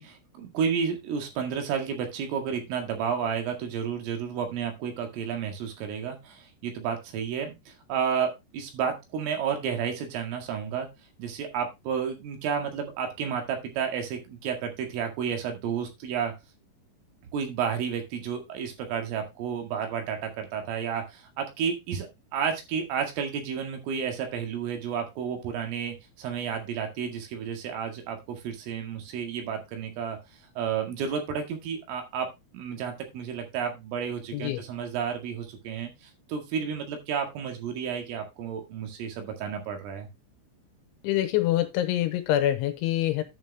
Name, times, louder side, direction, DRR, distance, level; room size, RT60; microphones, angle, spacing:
voice 1, 0.0-10.9 11.2-16.3 17.3-22.1 22.3-30.2 30.6-32.3 32.5-40.1, right 7 dB, 75° right, 4.6 m, -31 dB
voice 2, 41.0-43.2, left 13 dB, 80° left, 3.0 m, -25 dB
10.5 x 7.0 x 3.4 m
omnidirectional pair, 5.9 m